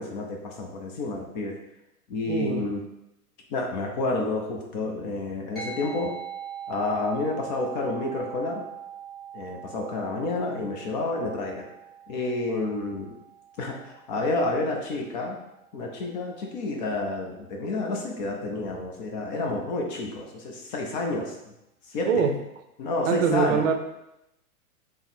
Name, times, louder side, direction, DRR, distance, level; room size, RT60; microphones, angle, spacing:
voice 1, 0.0-1.6 2.1-2.8 3.5-6.1 6.7-8.6 9.3-11.6 12.1-13.2 13.6-15.4 15.7-21.4 21.9-22.3 22.8-23.6, left 2 dB, 30° left, 1 dB, 0.5 m, -29 dB
voice 2, 2.3-2.6 22.0-22.4 23.1-23.8, right 6 dB, 55° right, 5 dB, 0.6 m, -23 dB
sound 1, 5.6-15.3, right 7 dB, ahead, 1.0 m, -42 dB
3.5 x 2.0 x 4.2 m, 0.87 s
hypercardioid pair, 115°, 45 cm